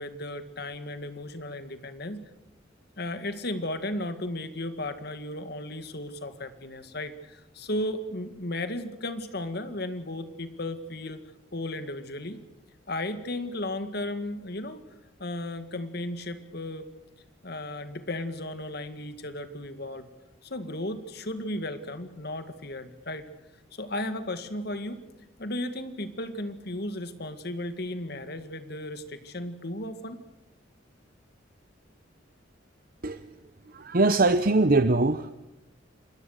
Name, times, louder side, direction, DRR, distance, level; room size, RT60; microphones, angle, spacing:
voice 1, 0.0-2.2 3.0-11.2 11.5-12.4 12.9-14.8 15.2-16.9 17.4-20.1 20.5-23.3 23.7-25.0 25.4-30.2, left 1 dB, 55° left, 10 dB, 2.0 m, -35 dB
voice 2, 33.0-33.3 33.7-35.3, right 2 dB, 45° right, 10 dB, 0.8 m, -22 dB
26.5 x 21.0 x 6.6 m, 0.95 s
head